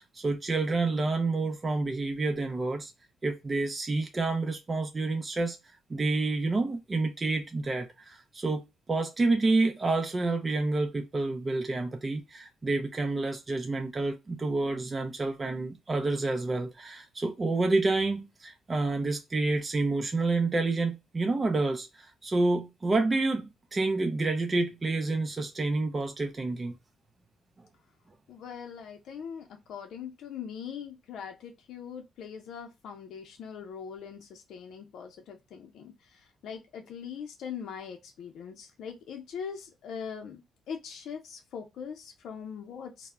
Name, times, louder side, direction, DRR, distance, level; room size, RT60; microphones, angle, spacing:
voice 1, 0.2-2.9 3.2-5.6 5.9-8.6 8.9-26.8, right 3 dB, 30° right, 0.4 m, -28 dB
voice 2, 28.3-43.1, left 7 dB, 75° left, 0.4 m, -41 dB
2.1 x 2.0 x 3.5 m
cardioid pair, 90°, 0 cm